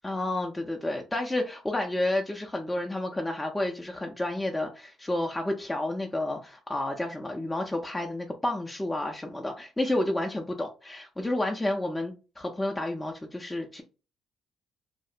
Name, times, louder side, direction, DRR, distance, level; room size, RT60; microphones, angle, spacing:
voice 1, 0.0-13.8, left 1 dB, 15° left, 0.4 m, -30 dB
2.7 x 2.0 x 2.4 m
supercardioid pair, 65°, 0 cm